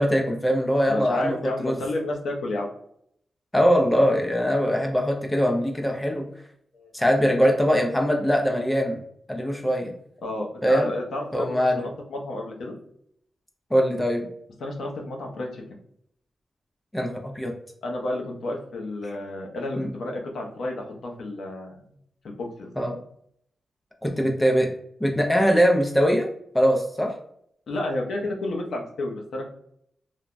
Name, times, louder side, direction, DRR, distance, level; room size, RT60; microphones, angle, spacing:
voice 1, 0.0-1.8 3.5-6.3 6.9-9.0 9.3-9.9 10.6-10.9 11.3-11.9 13.7-14.2 16.9-17.5 19.8-19.9 22.8-23.0 24.0-24.7 25.0-26.3 26.5-27.1, equal, 10° left, 2 dB, 0.3 m, -22 dB
voice 2, 0.9-2.7 6.7-6.9 10.2-12.7 14.6-15.6 17.8-21.8 22.2-22.3 22.6-22.7 27.7-29.5, left 1 dB, 80° left, 0 dB, 0.6 m, -31 dB
3.2 x 2.1 x 2.4 m, 0.69 s
wide cardioid pair, 150°, 0 cm